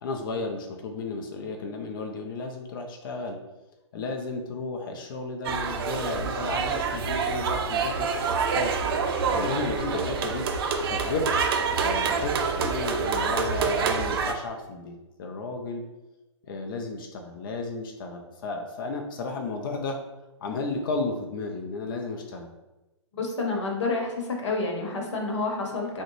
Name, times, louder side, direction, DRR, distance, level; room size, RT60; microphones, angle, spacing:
voice 1, 0.0-3.4 3.9-8.7 9.3-10.5 10.8-11.3 11.7-15.8 16.4-20.0 20.4-22.5, left 3 dB, 45° left, 4 dB, 0.4 m, -33 dB
sound 1, 5.4-14.3, right 5 dB, 50° right, 0.4 m, -27 dB
voice 2, 23.1-26.0, left 3 dB, 70° left, 0 dB, 0.9 m, -29 dB
3.6 x 2.1 x 3.0 m, 1.0 s
hypercardioid pair, 130°, 15 cm